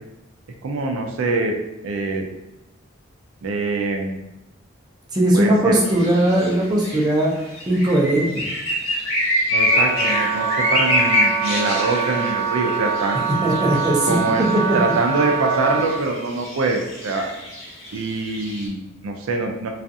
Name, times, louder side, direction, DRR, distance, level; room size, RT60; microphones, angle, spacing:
voice 1, 0.6-1.5 1.8-2.3 3.4-4.2 5.3-5.8 9.5-13.2 14.0-17.3 17.9-19.7, right 3 dB, 80° right, 3 dB, 0.4 m, -24 dB
voice 2, 5.1-7.3 7.7-8.5 13.4-14.8, right 1 dB, 20° right, -4 dB, 0.4 m, -19 dB
sound 1, 5.9-18.7, left 1 dB, 85° left, 1.0 m, -25 dB
Wind instrument woodwind instrument, 9.5-16.0, right 6 dB, 20° left, 0.8 m, -25 dB
2.4 x 2.4 x 2.6 m, 0.94 s
head